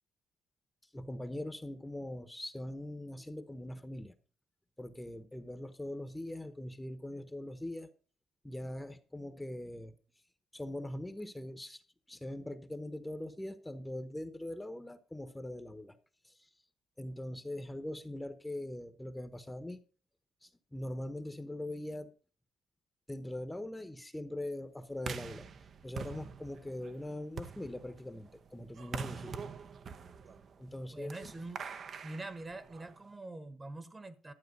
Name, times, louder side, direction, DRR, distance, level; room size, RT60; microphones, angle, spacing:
voice 1, 0.9-4.1 4.8-7.9 8.4-9.9 10.5-11.8 12.1-16.0 16.2-16.5 17.0-19.8 20.4-22.1 23.1-25.5 25.8-29.3 30.6-31.3, left 1 dB, 10° left, 1.0 m, -42 dB
sound 1, 25.0-33.1, right 6 dB, 55° right, 0.8 m, -45 dB
voice 2, 30.9-31.6 32.0-34.3, right 2 dB, 25° right, 1.2 m, -44 dB
12.0 x 7.5 x 5.4 m
cardioid pair, 90°, 0 cm